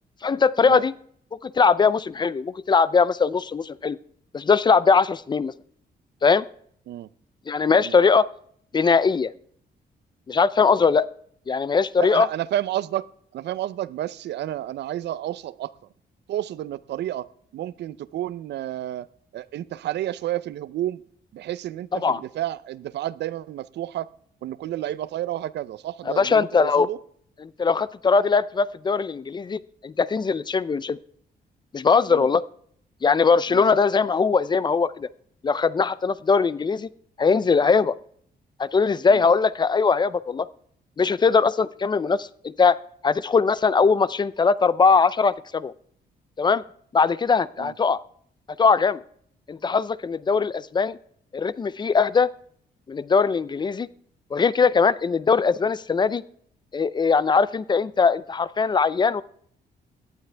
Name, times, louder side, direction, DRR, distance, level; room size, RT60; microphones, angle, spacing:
voice 1, 0.2-0.9 1.4-4.0 4.3-5.5 6.2-6.4 7.5-8.3 8.7-9.3 10.3-11.1 11.5-12.3 22.0-22.2 26.1-26.9 27.6-31.0 31.7-32.4 33.0-35.1 35.4-36.9 37.2-37.9 38.6-40.5 41.0-42.8 43.0-45.7 46.4-46.6 46.9-48.0 48.6-49.0 49.5-51.0 51.3-52.3 52.9-53.9 54.3-56.2 56.7-59.2, left 5 dB, 25° left, 18 dB, 0.4 m, -20 dB
voice 2, 12.0-13.1 13.3-15.7 16.3-19.1 19.3-21.0 21.3-24.1 24.4-27.0 32.1-32.3 33.5-33.7 39.1-39.3 47.6-47.7, right 13 dB, 90° right, 19 dB, 0.5 m, -31 dB
17.5 x 11.5 x 3.4 m, 0.63 s
wide cardioid pair, 150°, 17 cm